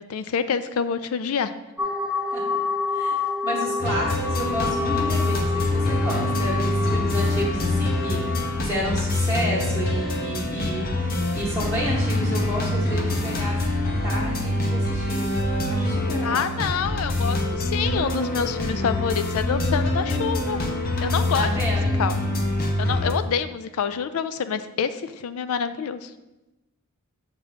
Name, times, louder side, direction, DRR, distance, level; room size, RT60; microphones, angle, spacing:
voice 1, 0.0-1.5 16.2-20.6 21.0-22.1 22.8-26.1, left 7 dB, 75° left, 12 dB, 0.4 m, -27 dB
sound 1, 1.8-8.6, left 4 dB, 5° right, 0.4 m, -28 dB
voice 2, 2.3-2.6 2.9-3.2 3.4-15.3 15.7-16.5 21.3-22.0, equal, 15° left, -5 dB, 0.9 m, -31 dB
sound 2, 3.8-23.1, left 1 dB, 45° left, 0.8 m, -25 dB
6.4 x 3.7 x 5.0 m, 1.0 s
head